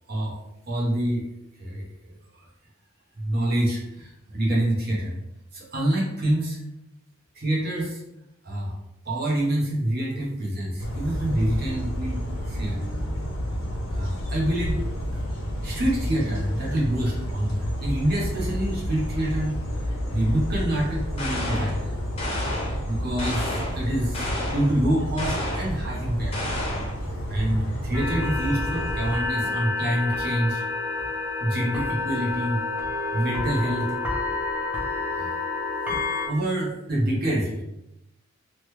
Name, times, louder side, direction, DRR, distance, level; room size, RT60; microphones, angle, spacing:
voice 1, 0.1-1.3 1.6-2.1 3.2-5.2 5.5-6.6 7.3-8.0 8.4-8.7 9.0-12.9 13.9-14.9 15.1-15.2 15.6-19.6 20.1-22.0 22.9-26.4 27.3-30.6 31.4-32.6 33.1-34.0 35.1-35.3 35.9-37.6, right 1 dB, 50° right, -4 dB, 0.9 m, -26 dB
sound 1, 10.8-29.1, equal, 70° left, 0.6 m, -30 dB
sound 2, 21.2-21.8 22.2-22.8 23.2-23.8 24.1-24.7 25.2-25.7 26.3-27.0, left 1 dB, 30° left, 0.7 m, -31 dB
sound 3, 27.9-36.3, left 3 dB, 10° right, 0.7 m, -29 dB
3.1 x 2.2 x 3.1 m, 0.88 s
head